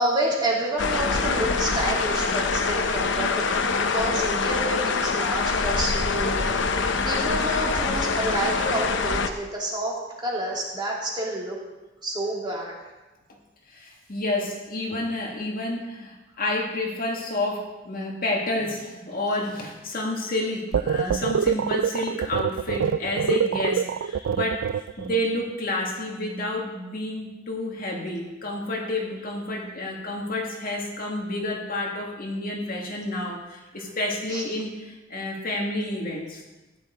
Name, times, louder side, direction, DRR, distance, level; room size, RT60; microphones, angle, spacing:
voice 1, 0.0-11.6 12.0-12.8 34.3-34.4, right 1 dB, 25° right, -3 dB, 2.7 m, -29 dB
sound 1, 0.8-9.3, left 4 dB, 65° left, 0.8 m, -25 dB
voice 2, 13.7-24.7 25.0-36.4, left 1 dB, 50° left, -1 dB, 2.1 m, -29 dB
sound 2, 20.7-25.2, right 7 dB, 85° right, 0.3 m, -25 dB
15.0 x 10.5 x 3.8 m, 1.1 s
head